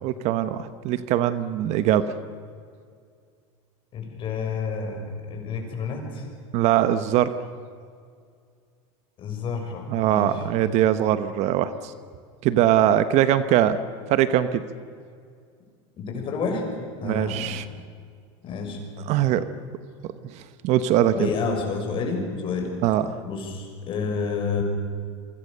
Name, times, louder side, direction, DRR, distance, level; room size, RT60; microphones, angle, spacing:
voice 1, 0.0-2.2 6.5-7.3 9.9-11.9 12.4-13.8 14.1-14.6 17.0-17.7 19.1-19.4 20.6-21.3 22.8-23.2, right 11 dB, 50° right, 12 dB, 1.1 m, -21 dB
voice 2, 3.9-6.3 9.2-10.4 16.0-16.6 17.0-17.6 18.4-18.8 21.1-22.7 23.2-24.6, left 5 dB, 35° left, 3 dB, 6.2 m, -29 dB
28.5 x 23.5 x 6.8 m, 2.2 s
supercardioid pair, 135°, 15 cm